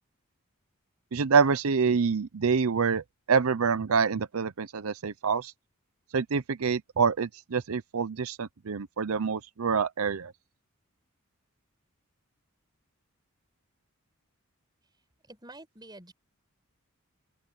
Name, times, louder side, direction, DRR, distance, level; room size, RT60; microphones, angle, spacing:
voice 1, 1.1-5.5 6.1-10.3, right 5 dB, 80° right, 0.6 m, -26 dB
voice 2, 15.3-16.1, right 2 dB, 20° right, 6.7 m, -48 dB
open air
head